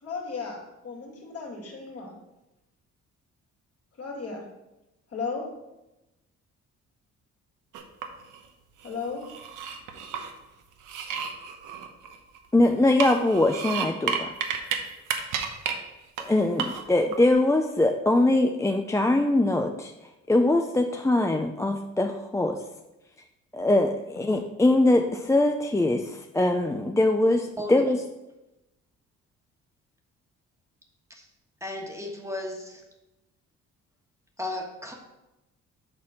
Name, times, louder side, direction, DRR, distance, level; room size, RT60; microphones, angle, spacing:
voice 1, 0.0-2.1 4.0-4.4 5.1-5.4 8.8-9.2, left 4 dB, 50° left, 0 dB, 2.3 m, -35 dB
sound 1, 7.7-8.4 8.8-10.3 10.8-12.5 12.9-14.8 15.1-15.7 16.2-16.3 16.6-17.2, right 7 dB, 85° right, 1.0 m, -31 dB
voice 2, 12.5-14.3 16.2-19.9 20.3-22.6 23.5-28.0, left 2 dB, 10° left, 4 dB, 0.4 m, -22 dB
voice 3, 31.6-32.8 34.4-34.9, left 1 dB, 10° right, 1 dB, 1.4 m, -34 dB
7.5 x 4.1 x 5.9 m, 0.98 s
cardioid pair, 90°, 30 cm